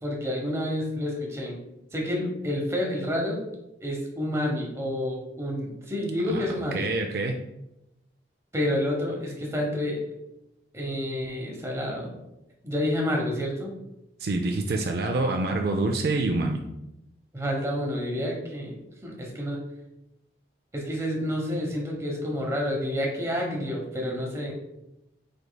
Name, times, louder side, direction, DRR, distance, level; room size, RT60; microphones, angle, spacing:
voice 1, 0.0-1.6 1.9-3.4 3.8-6.9 8.5-10.0 10.7-12.2 12.6-13.7 17.3-19.6 20.7-24.5, left 1 dB, 15° right, -1 dB, 0.9 m, -29 dB
voice 2, 6.3-7.4 14.2-16.6, right 2 dB, 60° right, 3 dB, 0.4 m, -26 dB
5.0 x 4.5 x 2.2 m, 0.89 s
head